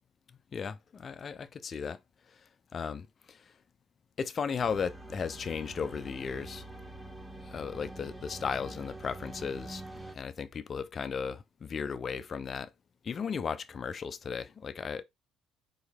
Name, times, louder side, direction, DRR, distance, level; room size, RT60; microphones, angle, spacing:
voice 1, 0.5-2.0 2.7-3.4 4.2-6.7 7.4-12.7 13.0-15.0, left 6 dB, 45° left, 0.6 m, -36 dB
sound 1, 4.6-10.1, right 2 dB, 10° right, 1.3 m, -45 dB
4.5 x 3.2 x 3.5 m
hypercardioid pair, 55°, 0 cm